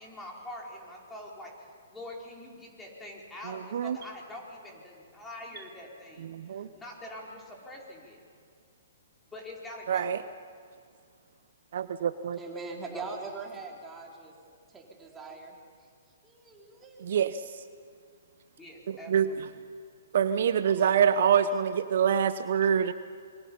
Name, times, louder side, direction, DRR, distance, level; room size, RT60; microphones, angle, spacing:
voice 1, 0.0-8.2 9.3-10.2 12.9-13.1 18.6-19.4, left 1 dB, 10° left, -2 dB, 5.0 m, -44 dB
voice 2, 3.5-4.0 6.3-6.7 9.9-10.2 11.7-12.4 17.0-17.4 18.9-19.3 20.1-22.9, right 8 dB, 60° right, 12 dB, 0.8 m, -25 dB
voice 3, 12.4-15.6 16.2-17.2 20.7-21.0 21.5-21.6 22.4-22.5, right 4 dB, 10° right, -1 dB, 3.8 m, -43 dB
27.0 x 23.0 x 5.6 m, 2.2 s
figure-of-eight pair, 125°, 0 cm